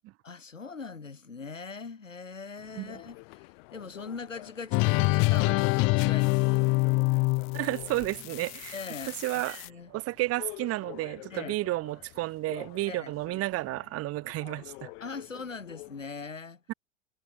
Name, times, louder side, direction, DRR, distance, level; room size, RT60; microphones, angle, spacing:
voice 1, 0.2-6.6 8.7-9.1 9.6-9.9 11.3-11.6 12.9-13.1 15.0-16.6, left 4 dB, 80° left, 4.6 m, -41 dB
sound 1, 2.6-16.1, left 28 dB, 50° left, 4.7 m, -48 dB
sound 2, 4.7-9.7, left 27 dB, 35° left, 0.6 m, -26 dB
voice 2, 7.5-8.8 9.2-14.9 16.7-16.8, right 18 dB, 40° right, 2.7 m, -32 dB
figure-of-eight pair, 85°, 38 cm